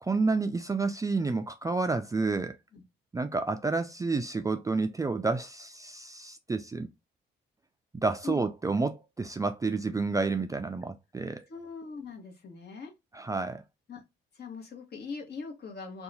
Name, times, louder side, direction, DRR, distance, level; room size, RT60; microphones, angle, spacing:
voice 1, 0.0-2.6 3.1-6.9 7.9-11.5 13.1-13.6, right 3 dB, 15° right, 0.3 m, -30 dB
voice 2, 11.5-12.9 13.9-14.0 14.3-16.0, left 5 dB, 55° left, 1.2 m, -41 dB
2.8 x 2.3 x 3.9 m
cardioid pair, 90°, 20 cm